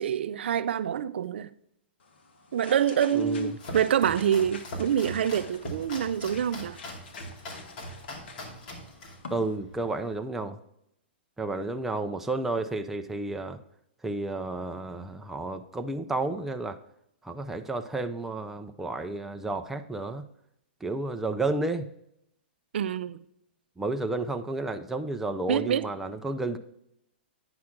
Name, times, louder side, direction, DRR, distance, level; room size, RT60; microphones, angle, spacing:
voice 1, 0.0-1.5 2.5-6.8 22.7-23.2 25.5-25.9, right 9 dB, 75° right, 0.4 m, -26 dB
sound 1, 2.0-9.6, left 4 dB, 75° left, 1.4 m, -48 dB
voice 2, 3.1-3.5 9.3-10.6 11.4-13.6 14.0-16.8 17.2-20.3 20.8-21.9 23.8-26.6, right 2 dB, 5° right, 0.4 m, -31 dB
Domestic sounds home sounds, 3.2-10.2, equal, 45° left, 2.6 m, -41 dB
9.6 x 5.9 x 3.6 m
hypercardioid pair, 150°, 6 cm